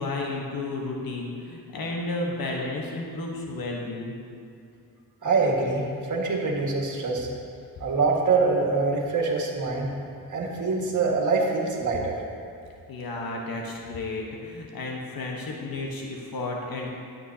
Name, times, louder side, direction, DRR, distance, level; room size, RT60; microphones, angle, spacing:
voice 1, 0.0-4.1 12.9-16.9, left 2 dB, 70° left, -1 dB, 1.2 m, -32 dB
voice 2, 5.2-7.3 7.8-9.9 10.3-12.1, right 4 dB, 55° right, -2 dB, 1.8 m, -24 dB
12.0 x 9.0 x 2.8 m, 2.5 s
cardioid pair, 75°, 37 cm